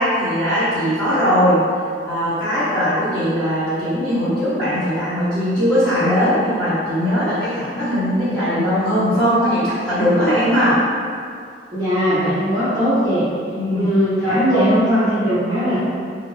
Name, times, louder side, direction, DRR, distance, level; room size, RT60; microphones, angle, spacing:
voice 1, 0.0-1.6 2.0-10.8 13.5-13.9 14.2-14.7, equal, 5° left, -16 dB, 1.3 m, -19 dB
voice 2, 11.7-13.2 13.7-15.8, equal, 25° right, -13 dB, 0.5 m, -19 dB
2.6 x 2.4 x 3.1 m, 2.3 s
head